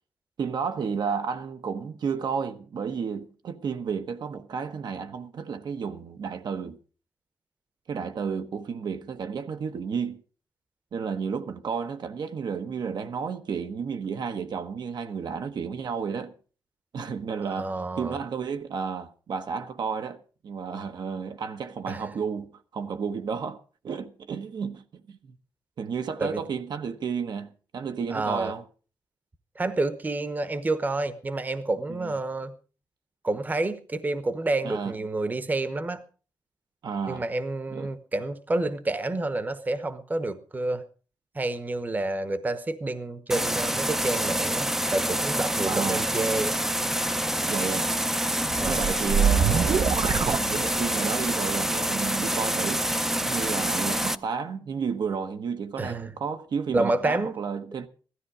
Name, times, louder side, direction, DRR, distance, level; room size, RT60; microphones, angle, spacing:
voice 1, 0.4-6.8 7.9-10.2 10.9-16.3 16.9-25.3 25.8-28.6 31.9-32.1 34.6-34.9 36.8-37.2 37.7-37.9 45.6-46.1 47.5-47.9 48.6-52.9 53.2-57.9, right 6 dB, 65° right, 1.2 m, -32 dB
voice 2, 17.5-18.2 21.9-22.1 26.2-26.4 28.1-28.5 29.5-32.5 33.2-36.0 37.1-40.8 41.3-46.5 48.6-48.8 55.8-56.1 56.7-57.3, right 2 dB, 20° right, 1.0 m, -29 dB
sound 1, 43.3-54.2, right 1 dB, 5° right, 0.6 m, -27 dB
sound 2, 48.4-51.1, right 6 dB, 50° right, 0.8 m, -25 dB
16.5 x 13.0 x 4.9 m
wide cardioid pair, 160°, 8 cm